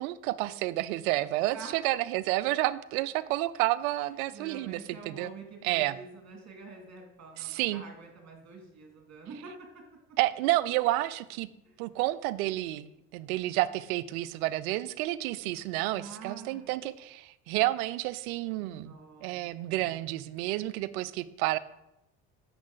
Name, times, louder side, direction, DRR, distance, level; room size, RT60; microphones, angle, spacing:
voice 1, 0.0-5.3 5.6-6.0 7.4-7.8 10.2-11.5 11.8-18.9 19.2-21.6, right 17 dB, 80° right, 16 dB, 0.6 m, -30 dB
voice 2, 4.3-9.8 10.1-10.2 11.6-11.8 15.9-16.7 18.6-19.3, right 4 dB, 40° right, 2 dB, 2.6 m, -47 dB
8.5 x 6.7 x 3.9 m, 0.87 s
hypercardioid pair, 70°, 43 cm